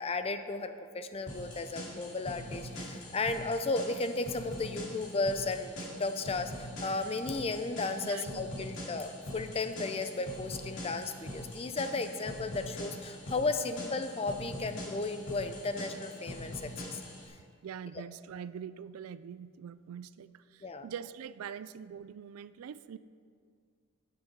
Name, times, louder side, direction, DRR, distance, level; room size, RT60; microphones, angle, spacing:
voice 1, 0.0-5.7 6.0-17.0 20.6-20.9, left 3 dB, 25° left, 9 dB, 0.4 m, -34 dB
sound 1, 1.3-17.3, equal, 60° left, 2.4 m, -43 dB
voice 2, 8.0-8.8 17.6-23.0, right 8 dB, 75° right, 15 dB, 0.3 m, -44 dB
9.6 x 6.9 x 5.9 m, 2.1 s
head